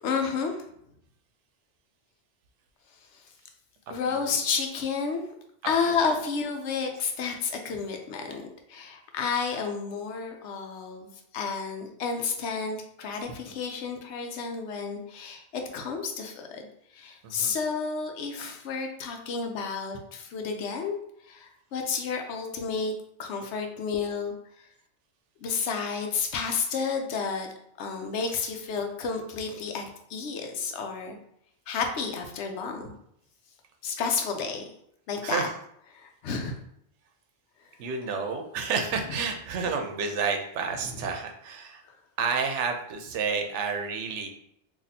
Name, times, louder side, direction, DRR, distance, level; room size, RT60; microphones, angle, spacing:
voice 1, 0.0-0.6 3.9-5.2 5.6-16.7 16.9-21.0 21.3-22.9 23.2-24.3 25.4-27.5 27.8-29.8 30.1-31.2 31.7-32.9 33.8-34.7 35.1-35.4 35.9-36.6, left 5 dB, 80° left, 4 dB, 0.9 m, -31 dB
voice 2, 3.9-4.4 17.2-17.5 35.2-35.5 37.8-41.8 42.2-44.3, right 5 dB, 85° right, 5 dB, 0.9 m, -30 dB
4.1 x 2.7 x 2.7 m, 0.72 s
omnidirectional pair, 1.2 m